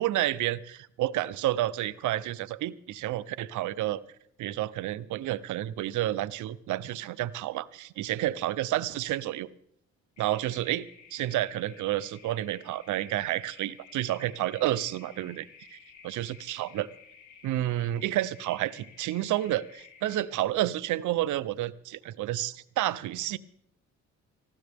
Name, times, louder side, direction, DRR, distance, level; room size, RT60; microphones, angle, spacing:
voice 1, 0.0-4.0 4.4-9.5 10.2-15.8 16.0-16.9 17.4-23.4, right 14 dB, 75° right, 18 dB, 0.6 m, -30 dB
sound 1, 10.2-20.2, left 6 dB, 65° left, 3.1 m, -54 dB
19.0 x 15.0 x 3.5 m, 0.73 s
cardioid pair, 90°, 30 cm